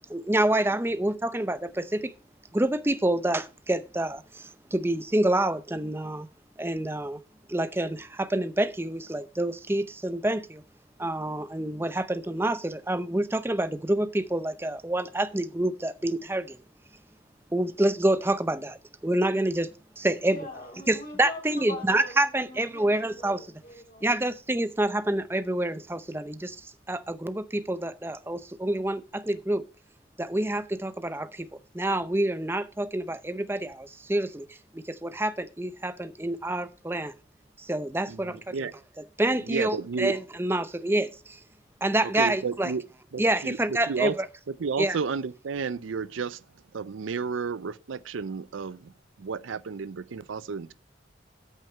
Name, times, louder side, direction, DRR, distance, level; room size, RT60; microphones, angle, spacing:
voice 1, 0.1-2.1 2.5-6.3 6.6-7.2 7.5-10.6 11.0-16.6 17.5-19.7 20.0-20.4 20.9-23.4 24.0-29.6 30.2-31.5 31.7-34.5 34.7-37.1 37.6-38.7 39.2-41.4 41.8-42.7 43.2-44.3 44.8-45.0, right 1 dB, 10° right, 0.6 m, -27 dB
voice 2, 20.3-24.2, left 2 dB, 45° left, 3.4 m, -43 dB
voice 3, 39.5-40.2 42.0-42.8 43.1-44.2 44.5-46.4 46.7-48.9 49.2-50.7, right 5 dB, 85° right, 0.5 m, -32 dB
13.5 x 6.4 x 4.4 m
head